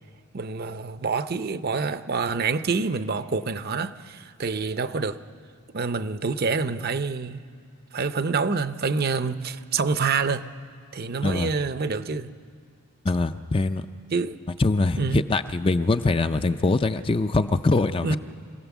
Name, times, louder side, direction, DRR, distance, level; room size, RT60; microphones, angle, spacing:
voice 1, 0.3-5.2 5.7-7.4 7.9-10.5 10.9-12.3 14.1-14.4 15.0-15.2 18.0-18.2, right 4 dB, 45° right, 0.6 m, -27 dB
voice 2, 13.0-13.9 14.6-18.2, left 3 dB, 25° left, 0.4 m, -23 dB
25.5 x 16.5 x 7.2 m
head